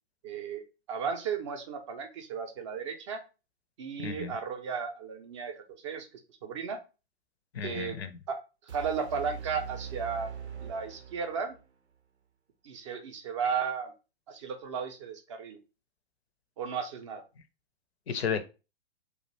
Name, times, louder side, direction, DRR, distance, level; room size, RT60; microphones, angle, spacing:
voice 1, 0.2-3.2 3.8-6.1 6.4-6.8 7.6-8.0 8.3-8.4 8.7-11.6 12.6-13.9 14.3-15.6 16.6-17.2, right 6 dB, 30° right, 0.4 m, -35 dB
voice 2, 4.0-4.3 7.5-8.1 18.1-18.5, left 7 dB, 75° left, 0.5 m, -33 dB
sound 1, 8.7-11.7, right 8 dB, 90° right, 0.5 m, -42 dB
2.3 x 2.0 x 2.9 m
figure-of-eight pair, 110°, 32 cm